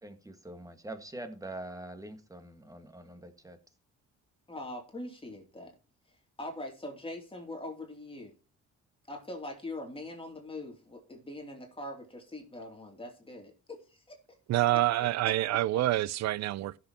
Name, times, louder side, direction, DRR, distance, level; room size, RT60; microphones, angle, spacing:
voice 1, 0.0-3.6, right 1 dB, 10° right, 1.7 m, -44 dB
voice 2, 4.5-5.7 6.1-8.3 9.1-14.2 14.7-15.8, left 1 dB, 20° left, 2.7 m, -43 dB
voice 3, 14.5-16.8, right 15 dB, 60° right, 0.5 m, -27 dB
15.5 x 6.8 x 2.9 m
cardioid pair, 90°, 30 cm